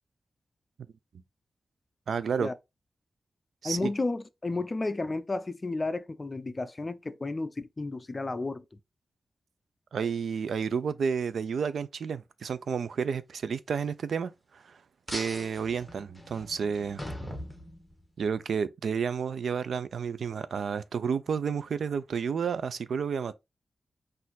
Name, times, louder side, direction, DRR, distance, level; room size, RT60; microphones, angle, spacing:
voice 1, 2.1-2.5 3.6-3.9 9.9-14.8 15.1-17.0 18.2-23.3, right 6 dB, 85° right, 0.3 m, -31 dB
voice 2, 3.6-8.6, left 2 dB, 30° left, 0.4 m, -32 dB
sound 1, 15.1-18.3, left 1 dB, 5° left, 1.1 m, -41 dB
4.2 x 2.5 x 3.9 m
wide cardioid pair, 105°, 0 cm